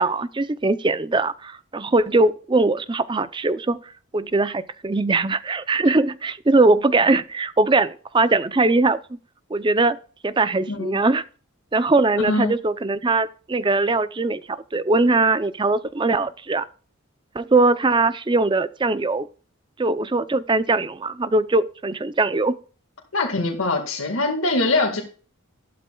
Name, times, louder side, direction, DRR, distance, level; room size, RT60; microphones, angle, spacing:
voice 1, 0.0-3.8 4.1-9.0 9.5-10.0 10.2-11.2 11.7-16.6 17.3-19.3 19.8-22.6, right 3 dB, 20° right, 0.5 m, -21 dB
voice 2, 10.7-11.0 12.3-12.5 23.1-25.0, left 2 dB, 75° left, 1.9 m, -23 dB
12.0 x 12.0 x 2.3 m
head